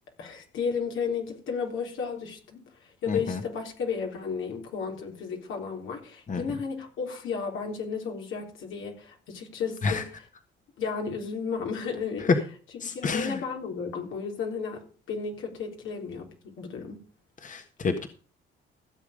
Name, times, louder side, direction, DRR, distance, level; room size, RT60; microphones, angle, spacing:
voice 1, 0.2-2.6 3.0-10.1 10.8-12.3 12.9-17.0, left 5 dB, 80° left, 3.7 m, -33 dB
voice 2, 3.1-3.4 6.3-6.4 9.8-10.0 12.3-12.4 12.8-13.4 17.4-18.1, left 4 dB, 40° left, 1.5 m, -27 dB
15.5 x 7.3 x 5.1 m
cardioid pair, 90°, 20 cm